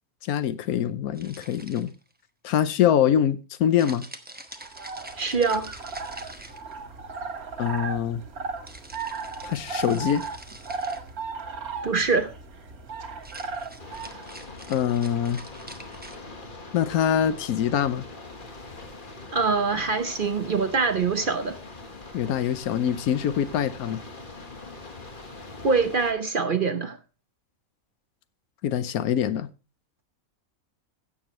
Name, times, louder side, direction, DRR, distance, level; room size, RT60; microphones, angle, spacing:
voice 1, 0.2-1.9 2.4-4.1 7.6-8.2 9.4-10.2 14.7-15.4 16.7-18.0 22.1-24.0 28.6-29.5, left 9 dB, 85° left, 1.2 m, -24 dB
sound 1, 1.1-2.1 3.8-7.0 8.7-11.1 13.1-16.2, right 1 dB, 10° right, 0.8 m, -45 dB
sound 2, 4.6-14.3, right 4 dB, 85° right, 2.0 m, -36 dB
voice 2, 5.2-5.7 11.8-12.3 19.3-21.6 25.6-27.0, right 4 dB, 45° right, 0.7 m, -24 dB
sound 3, 13.8-26.1, left 2 dB, 35° left, 1.6 m, -42 dB
16.0 x 7.0 x 3.1 m
omnidirectional pair, 1.5 m